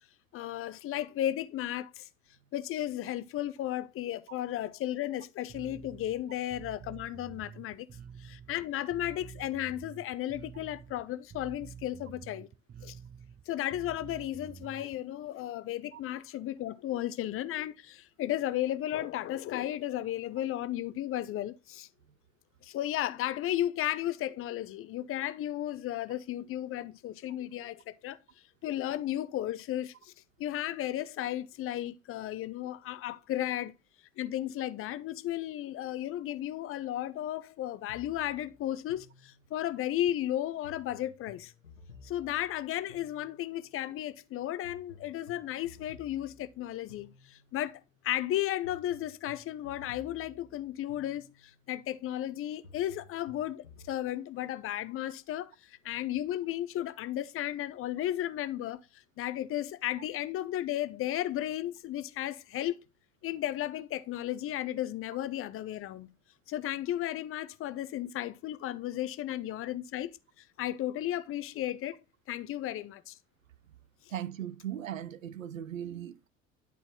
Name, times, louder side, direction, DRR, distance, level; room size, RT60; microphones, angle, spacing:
voice 1, 0.3-2.1 2.5-7.9 8.2-12.5 12.8-13.0 13.5-21.9 22.6-28.2 28.6-30.1 30.4-33.7 34.2-41.5 42.0-58.8 59.2-62.8 63.2-66.1 66.5-70.1 70.6-72.0 72.3-73.2, left 13 dB, 35° left, 0.6 m, -34 dB
Bass guitar, 5.5-15.0, right 8 dB, 25° right, 0.7 m, -49 dB
sound 1, 37.9-39.8 40.6-43.7 44.6-47.7 48.6-51.7 52.6-54.0, left 3 dB, 85° left, 1.0 m, -55 dB
voice 2, 74.1-76.3, right 10 dB, 80° right, 0.6 m, -38 dB
10.5 x 4.1 x 3.6 m
figure-of-eight pair, 65°, 40 cm